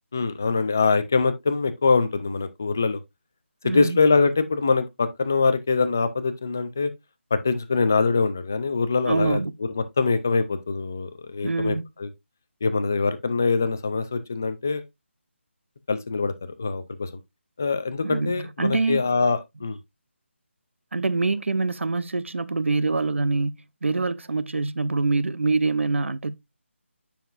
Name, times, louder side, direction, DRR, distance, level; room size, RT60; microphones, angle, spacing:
voice 1, 0.1-3.0 3.7-6.9 7.3-9.4 9.7-12.1 12.6-14.8 15.9-17.1 17.6-19.8, left 4 dB, 10° left, 0.3 m, -23 dB
voice 2, 3.6-4.0 9.0-9.5 11.4-11.8 18.0-19.0 20.9-26.4, right 3 dB, 70° right, 0.8 m, -25 dB
9.3 x 5.8 x 2.5 m
figure-of-eight pair, 180°, 7 cm